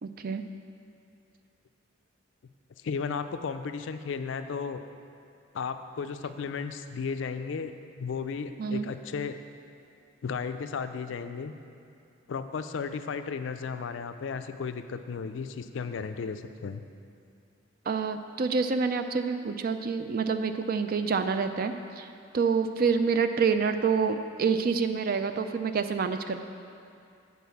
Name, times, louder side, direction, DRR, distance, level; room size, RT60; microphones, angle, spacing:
voice 1, 0.0-0.4 8.6-8.9 17.9-22.1 22.3-26.4, right 5 dB, 50° right, 8 dB, 0.4 m, -27 dB
voice 2, 2.8-4.8 5.5-7.7 8.0-9.4 10.2-11.5 12.3-16.8, left 5 dB, 70° left, 9 dB, 0.4 m, -34 dB
8.3 x 4.1 x 7.0 m, 2.5 s
head